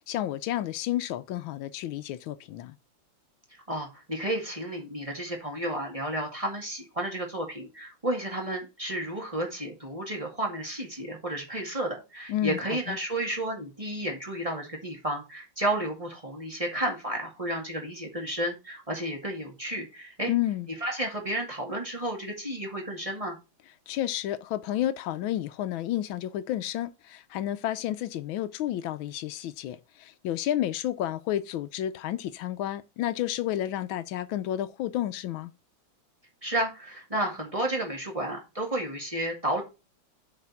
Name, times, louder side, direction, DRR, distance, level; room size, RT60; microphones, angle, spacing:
voice 1, 0.1-2.7 12.3-12.6 12.9-13.0 20.3-20.7 23.9-35.5, left 12 dB, 85° left, 1.4 m, -31 dB
voice 2, 3.7-20.3 20.8-23.4 36.4-39.6, right 1 dB, 15° right, 1.9 m, -32 dB
7.5 x 4.5 x 5.7 m
omnidirectional pair, 2.1 m